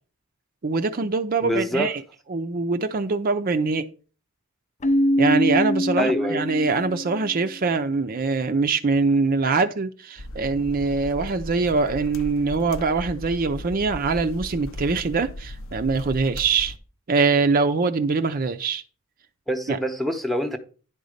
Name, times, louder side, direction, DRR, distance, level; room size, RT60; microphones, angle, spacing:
voice 1, 0.6-2.0 2.3-3.9 5.2-16.7 17.1-18.8 19.7-19.8, right 4 dB, 40° right, 0.5 m, -23 dB
voice 2, 1.4-1.9 6.0-6.4 19.5-20.6, equal, ahead, 0.8 m, -25 dB
Keyboard (musical), 4.8-7.5, equal, 30° left, 0.4 m, -24 dB
sound 1, 10.2-16.8, left 1 dB, 60° left, 0.7 m, -37 dB
10.5 x 4.0 x 6.4 m
head